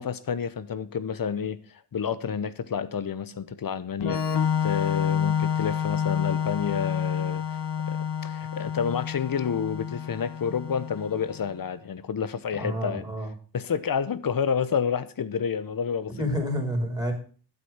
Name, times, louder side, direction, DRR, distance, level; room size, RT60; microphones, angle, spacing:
voice 1, 0.0-1.6 1.9-7.6 7.9-13.0 13.5-16.3, left 7 dB, 50° left, 1.0 m, -29 dB
Organ, 4.0-11.5, left 8 dB, 70° left, 1.9 m, -28 dB
voice 2, 12.6-13.3 16.2-17.1, equal, 10° right, 3.8 m, -29 dB
12.0 x 8.2 x 5.8 m
wide cardioid pair, 100°, 43 cm